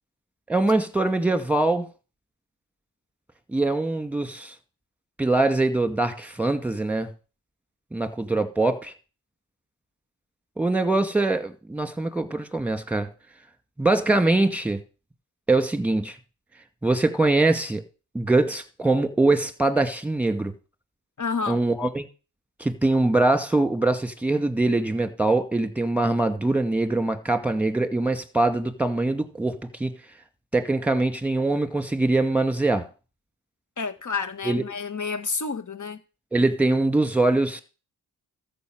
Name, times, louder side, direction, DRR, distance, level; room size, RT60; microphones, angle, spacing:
voice 1, 0.5-1.9 3.5-4.5 5.2-7.1 7.9-8.9 10.6-13.1 13.8-14.8 15.5-16.2 16.8-17.8 18.1-20.5 21.5-22.1 22.6-29.9 30.5-32.9 34.4-34.6 36.3-37.6, right 2 dB, 5° right, 2.3 m, -23 dB
voice 2, 21.2-21.6 33.8-36.0, left 5 dB, 45° left, 1.8 m, -29 dB
13.5 x 5.9 x 7.8 m
cardioid pair, 50°, 41 cm